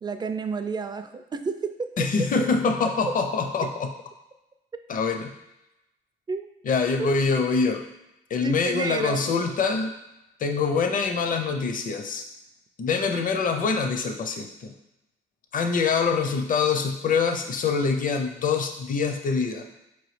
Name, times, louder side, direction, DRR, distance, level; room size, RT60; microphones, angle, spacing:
voice 1, 0.0-1.9 3.6-3.7 6.3-6.5 7.0-7.4 8.4-9.3, right 5 dB, 20° right, 8 dB, 0.3 m, -31 dB
voice 2, 2.0-3.9 4.9-5.3 6.7-7.8 8.3-9.9 10.4-12.2 12.8-14.7 15.5-19.7, left 5 dB, 45° left, 6 dB, 0.5 m, -25 dB
4.5 x 3.0 x 3.2 m, 0.90 s
cardioid pair, 90°, 20 cm